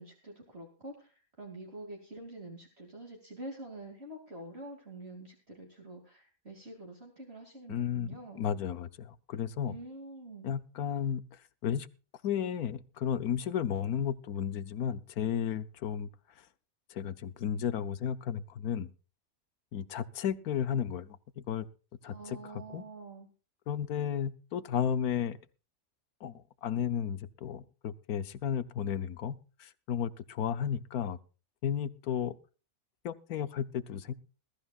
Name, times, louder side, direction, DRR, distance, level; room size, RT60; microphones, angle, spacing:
voice 1, 0.0-8.4 9.6-10.5 22.1-23.3, right 2 dB, 45° right, 1 dB, 2.9 m, -46 dB
voice 2, 7.7-9.8 10.4-11.2 11.6-11.9 12.2-16.1 16.9-18.9 19.7-21.7 22.0-22.8 23.7-25.4 26.2-31.2 31.6-32.3 33.0-34.1, left 8 dB, 80° left, 14 dB, 1.4 m, -33 dB
21.0 x 13.5 x 2.4 m, 0.34 s
omnidirectional pair, 1.6 m